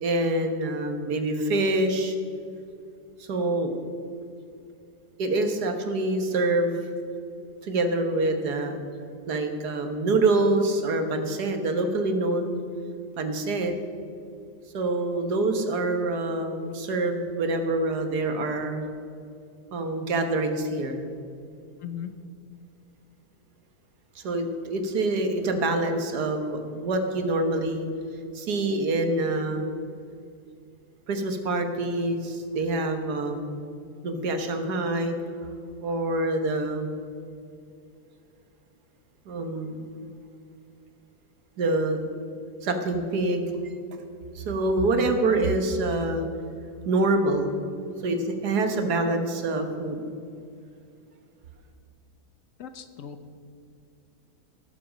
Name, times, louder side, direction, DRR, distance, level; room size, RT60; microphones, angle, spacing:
voice 1, 0.0-2.2 3.2-3.8 5.2-6.8 7.6-8.8 9.3-12.6 13.2-13.7 14.7-18.9 19.7-21.0 24.2-27.9 28.3-29.7 31.1-33.6 34.0-35.2 35.8-36.9 39.3-39.8 41.6-42.1 42.6-43.5 44.4-46.3 46.9-47.5 48.0-50.0, right 2 dB, 85° right, 6 dB, 1.7 m, -26 dB
voice 2, 21.8-22.1 44.9-45.1 52.6-53.2, left 9 dB, 60° left, 9 dB, 1.0 m, -37 dB
17.5 x 7.5 x 5.1 m, 2.4 s
omnidirectional pair, 1.7 m